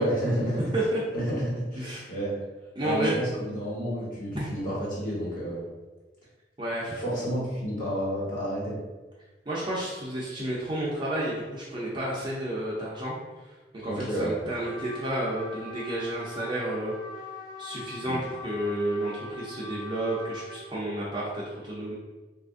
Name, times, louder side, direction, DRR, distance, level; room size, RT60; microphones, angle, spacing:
voice 1, 0.0-0.6 1.1-2.3 2.8-5.6 7.0-8.8 13.8-14.4 18.0-18.2, equal, 50° left, -6 dB, 1.3 m, -30 dB
voice 2, 1.8-2.1 2.8-3.1 4.3-4.5 6.6-7.0 9.5-16.9 17.6-21.9, right 1 dB, 25° right, -7 dB, 0.6 m, -31 dB
Trumpet, 14.5-20.7, left 1 dB, 25° left, 0.5 m, -42 dB
2.9 x 2.5 x 3.6 m, 1.2 s
head